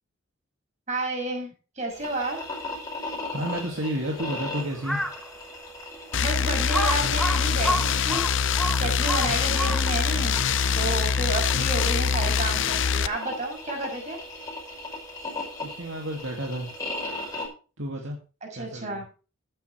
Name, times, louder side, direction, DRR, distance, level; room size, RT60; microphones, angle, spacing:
voice 1, 0.9-2.4 6.2-8.3 8.8-10.4 10.7-14.2 18.5-19.0, right 2 dB, 35° right, 1 dB, 6.2 m, -31 dB
sound 1, 1.9-17.5, left 2 dB, 15° left, 5.7 m, -38 dB
voice 2, 3.3-5.1 15.6-16.7 17.8-18.2 18.6-19.0, right 1 dB, 65° right, 1 dB, 2.3 m, -31 dB
Crow, 4.7-5.2 5.8-5.9 6.7-10.1, equal, ahead, 1.3 m, -29 dB
sound 2, 6.1-13.1, left 6 dB, 60° left, 0.6 m, -24 dB
16.0 x 9.2 x 3.3 m, 0.34 s
head